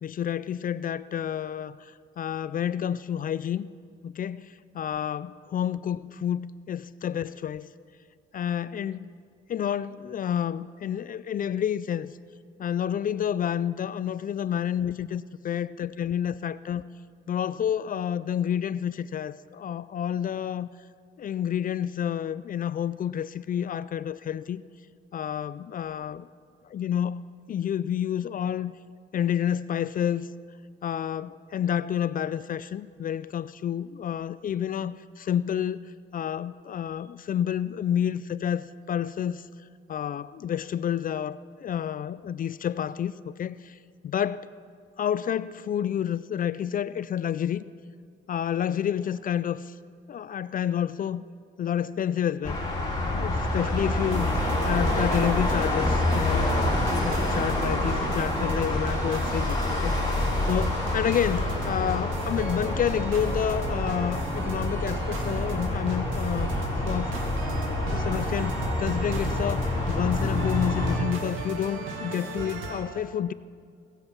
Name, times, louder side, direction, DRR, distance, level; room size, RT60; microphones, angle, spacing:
voice 1, 0.0-3.7 4.0-7.7 8.3-9.1 9.5-12.1 12.6-16.9 17.3-20.7 21.2-24.6 25.1-26.3 26.6-27.2 27.5-28.7 29.1-30.3 30.8-35.8 36.1-39.4 39.9-43.8 44.0-44.5 45.0-47.6 48.3-49.7 50.1-51.2 51.6-52.6 53.0-59.6 59.8-66.5 66.9-67.3 67.9-73.3, left 9 dB, 45° left, 17 dB, 0.4 m, -29 dB
sound 1, 52.4-71.0, left 1 dB, 20° left, 3.5 m, -27 dB
sound 2, 54.0-72.8, right 3 dB, 80° right, 2.1 m, -36 dB
21.0 x 8.3 x 5.9 m, 2.1 s
cardioid pair, 90°, 20 cm